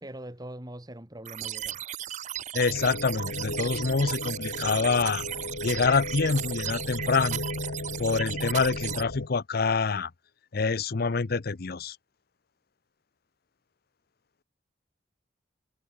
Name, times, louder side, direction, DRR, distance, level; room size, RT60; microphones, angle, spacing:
voice 1, 0.0-1.8, right 1 dB, 20° right, 2.1 m, -42 dB
sound 1, 1.3-9.0, right 11 dB, 40° right, 0.4 m, -36 dB
voice 2, 2.5-5.2 5.6-7.4 8.0-10.1 10.5-12.0, left 4 dB, 55° left, 0.7 m, -26 dB
sound 2, 2.7-9.3, left 2 dB, 85° left, 2.0 m, -36 dB
head